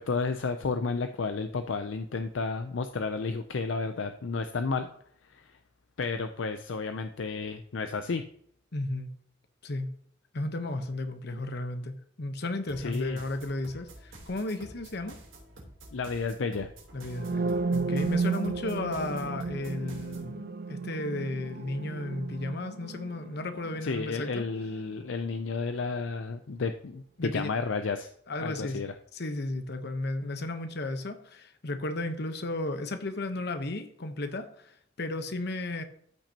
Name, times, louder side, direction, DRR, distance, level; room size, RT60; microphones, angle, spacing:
voice 1, 0.0-4.9 5.2-5.5 6.0-8.2 12.8-13.2 15.9-16.7 23.8-28.1 28.4-28.9, left 4 dB, 70° left, 8 dB, 0.5 m, -32 dB
voice 2, 8.7-9.1 9.6-9.9 10.3-15.2 16.9-24.4 27.2-27.5 28.3-28.8 29.1-35.8, left 2 dB, 55° left, 8 dB, 1.0 m, -34 dB
sound 1, 12.7-20.3, right 1 dB, 80° right, 3.2 m, -50 dB
sound 2, 17.1-24.9, right 4 dB, 50° right, 0.5 m, -33 dB
13.5 x 5.9 x 2.9 m, 0.66 s
head